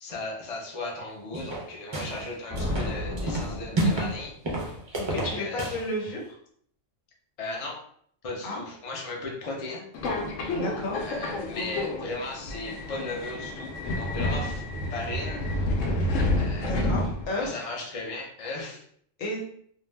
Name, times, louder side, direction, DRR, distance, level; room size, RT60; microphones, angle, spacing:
voice 1, 0.0-4.4 5.1-5.6 7.4-7.8 8.2-9.9 10.9-14.6 14.9-15.4 16.4-16.7 17.3-18.8, left 2 dB, 45° left, 0 dB, 0.4 m, -36 dB
sound 1, 1.3-2.3 2.6-4.2 4.4-5.8, right 1 dB, 45° right, 0.3 m, -29 dB
sound 2, 2.5-4.5, left 1 dB, 15° left, 0.9 m, -33 dB
voice 2, 5.0-6.4 8.4-8.6 10.5-11.0 16.6-17.6 19.2-19.4, left 1 dB, 90° left, -1 dB, 1.2 m, -32 dB
Subway metro underground, 9.9-17.5, left 1 dB, 75° left, 0.9 m, -29 dB
2.5 x 2.1 x 3.2 m, 0.63 s
omnidirectional pair, 1.3 m